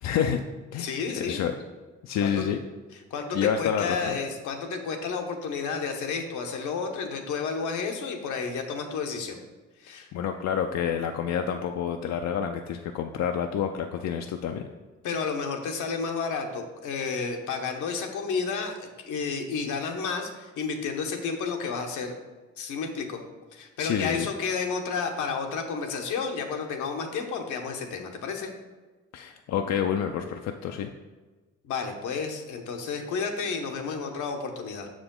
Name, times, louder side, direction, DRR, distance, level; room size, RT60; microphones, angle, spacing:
voice 1, 0.0-0.4 0.7-1.5 2.0-2.6 3.3-4.2 10.1-14.7 23.8-24.3 29.1-30.9, left 8 dB, 65° left, 5 dB, 0.5 m, -28 dB
voice 2, 0.8-1.4 2.2-2.4 3.1-9.4 9.8-10.1 15.0-22.1 22.6-23.2 23.5-28.5 31.6-34.9, left 5 dB, 80° left, 4 dB, 0.9 m, -31 dB
6.2 x 5.0 x 3.7 m, 1.3 s
cardioid pair, 90°, 30 cm